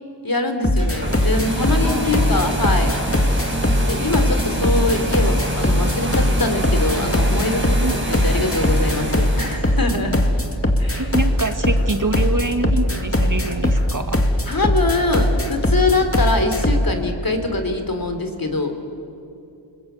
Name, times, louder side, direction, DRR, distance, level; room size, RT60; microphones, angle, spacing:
voice 1, 0.2-3.0 3.8-10.2 10.8-11.1 14.5-18.7, left 2 dB, 45° left, 6 dB, 3.2 m, -23 dB
sound 1, 0.6-16.9, left 1 dB, 30° left, 2.2 m, -20 dB
sound 2, 0.7-9.6, right 1 dB, 25° right, 5.2 m, -27 dB
voice 2, 1.8-2.5 7.8-8.1 11.0-14.2, right 2 dB, 40° right, 7 dB, 1.6 m, -25 dB
29.0 x 21.0 x 8.0 m, 2.7 s
wide cardioid pair, 45°, 46 cm